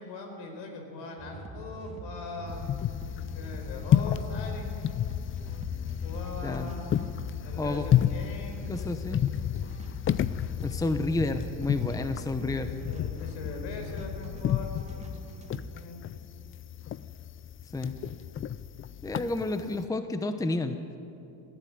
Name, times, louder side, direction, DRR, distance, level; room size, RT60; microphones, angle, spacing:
voice 1, 0.0-3.0 3.3-4.9 6.0-9.4 12.5-12.6 12.9-14.9 15.7-16.0, left 3 dB, 70° left, 4 dB, 4.8 m, -41 dB
sound 1, 1.2-15.8, right 1 dB, 15° right, 2.2 m, -44 dB
sound 2, 2.5-19.8, left 10 dB, 30° left, 0.4 m, -31 dB
voice 2, 8.7-9.2 10.6-12.8 17.7-18.0 19.0-21.0, left 2 dB, 10° left, 9 dB, 0.9 m, -30 dB
20.0 x 14.0 x 9.5 m, 2.8 s
cardioid pair, 110°, 45 cm